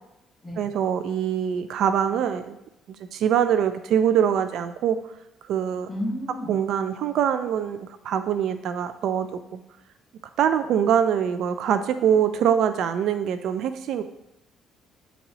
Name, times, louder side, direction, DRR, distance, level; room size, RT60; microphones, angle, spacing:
voice 1, 0.6-2.6 3.1-5.0 5.5-5.9 6.5-9.6 10.4-14.0, right 8 dB, 65° right, 10 dB, 0.3 m, -23 dB
voice 2, 5.9-6.5, left 1 dB, 10° left, -3 dB, 1.6 m, -31 dB
8.2 x 4.0 x 2.9 m, 0.88 s
cardioid pair, 145°, 0 cm